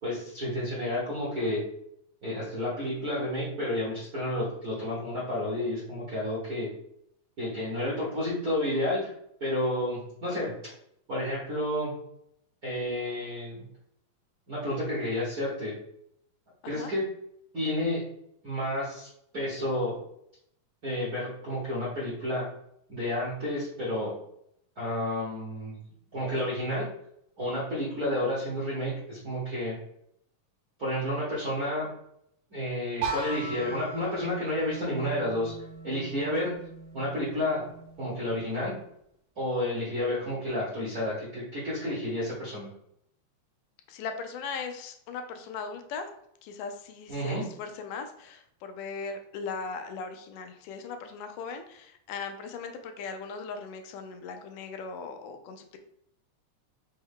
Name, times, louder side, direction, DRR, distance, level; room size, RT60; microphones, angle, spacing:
voice 1, 0.0-1.6 2.2-6.7 7.4-9.1 9.4-10.5 11.1-11.9 12.6-13.6 14.5-15.7 16.6-17.0 17.5-18.0 18.4-19.1 19.3-19.9 20.8-22.4 22.9-24.1 24.8-25.7 26.1-26.8 27.4-29.7 30.8-31.9 32.5-35.5 35.8-36.5 36.9-37.6 38.0-38.7 39.4-42.7 47.1-47.4, left 1 dB, 60° right, -9 dB, 0.9 m, -30 dB
sound 1, 33.0-38.8, right 3 dB, 85° right, 1.5 m, -39 dB
voice 2, 43.9-46.1 46.4-55.8, left 5 dB, 85° left, 6 dB, 2.1 m, -38 dB
5.2 x 2.3 x 3.6 m, 0.72 s
omnidirectional pair, 3.7 m